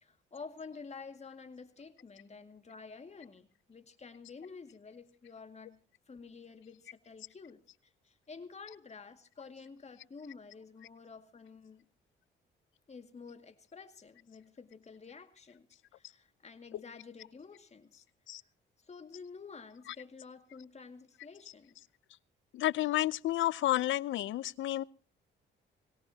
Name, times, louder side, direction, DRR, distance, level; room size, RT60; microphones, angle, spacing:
voice 1, 0.0-5.8 6.1-7.6 8.0-11.9 12.9-18.0 18.8-21.8, left 5 dB, 35° left, 2.2 m, -50 dB
voice 2, 22.5-24.8, left 14 dB, 75° left, 0.6 m, -30 dB
22.0 x 18.0 x 2.8 m
cardioid pair, 90°, 20 cm